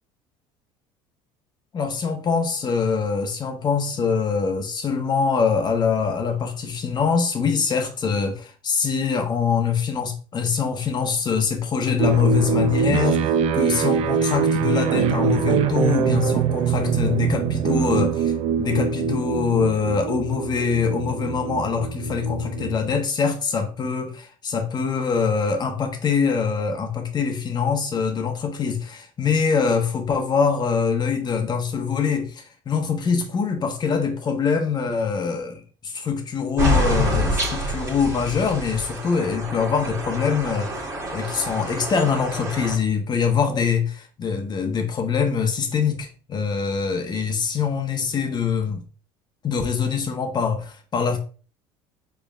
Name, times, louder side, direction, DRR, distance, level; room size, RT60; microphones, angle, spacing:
voice 1, 1.7-18.3 18.6-40.7 41.1-48.8 49.4-51.2, left 6 dB, 35° left, 1.2 m, -24 dB
sound 1, 12.0-22.9, right 7 dB, 55° right, 0.5 m, -23 dB
sound 2, 36.6-42.8, equal, 25° right, 1.6 m, -26 dB
5.4 x 3.8 x 2.5 m
supercardioid pair, 90°, 12 cm